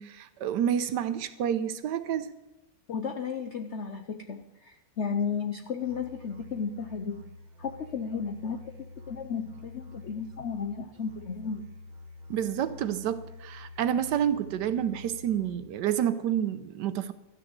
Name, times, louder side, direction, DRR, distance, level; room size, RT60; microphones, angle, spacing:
voice 1, 0.0-2.3 12.3-17.1, right 9 dB, 75° right, 12 dB, 1.2 m, -29 dB
voice 2, 2.9-7.2 7.6-8.6 9.1-11.6, left 6 dB, 70° left, 7 dB, 0.6 m, -34 dB
Musical instrument, 5.8-15.8, left 3 dB, 90° right, 1.8 m, -48 dB
13.5 x 6.4 x 8.0 m, 0.97 s
omnidirectional pair, 2.0 m